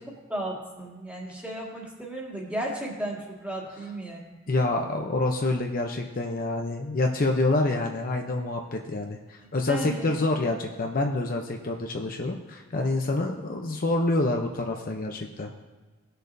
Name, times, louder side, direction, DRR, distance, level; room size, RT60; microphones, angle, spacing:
voice 1, 0.3-4.3 9.7-10.1, right 1 dB, 5° right, -3 dB, 1.9 m, -34 dB
voice 2, 4.5-15.5, left 2 dB, 45° left, 2 dB, 0.7 m, -27 dB
17.5 x 6.6 x 2.7 m, 1.3 s
head